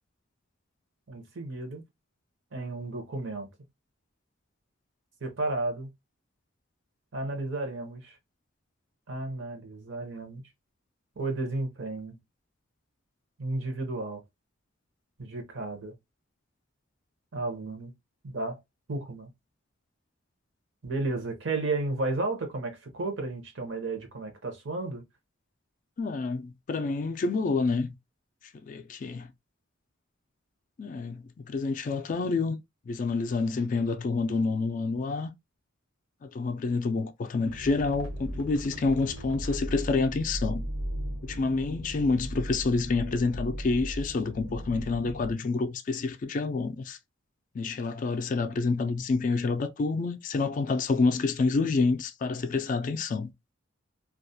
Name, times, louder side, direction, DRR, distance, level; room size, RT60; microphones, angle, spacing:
voice 1, 1.1-1.8 2.5-3.5 5.2-5.9 7.1-8.2 9.1-10.4 11.2-12.2 13.4-14.2 15.2-16.0 17.3-17.9 18.2-18.6 18.9-19.3 20.8-25.0, right 2 dB, 65° right, 0.7 m, -33 dB
voice 2, 26.0-28.0 28.6-29.3 30.8-35.3 36.2-40.6 41.2-47.0 47.5-53.3, left 3 dB, 40° left, 0.3 m, -28 dB
sound 1, 37.5-45.3, equal, 85° right, 1.2 m, -37 dB
2.3 x 2.1 x 2.6 m
head